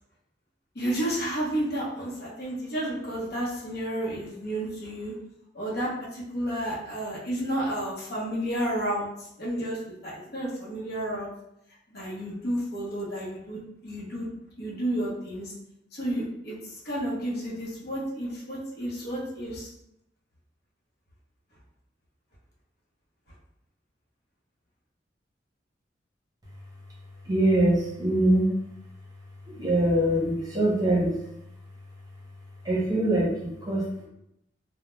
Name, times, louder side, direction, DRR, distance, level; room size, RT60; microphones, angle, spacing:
voice 1, 0.7-5.1 5.5-9.1 9.4-11.3 11.9-14.3 14.6-15.5 15.9-16.6 16.8-19.7, right 1 dB, 60° left, -4 dB, 0.8 m, -31 dB
voice 2, 27.2-28.5 29.5-31.2 32.6-33.8, right 1 dB, 20° right, -5 dB, 0.7 m, -23 dB
2.3 x 2.1 x 3.0 m, 0.79 s
head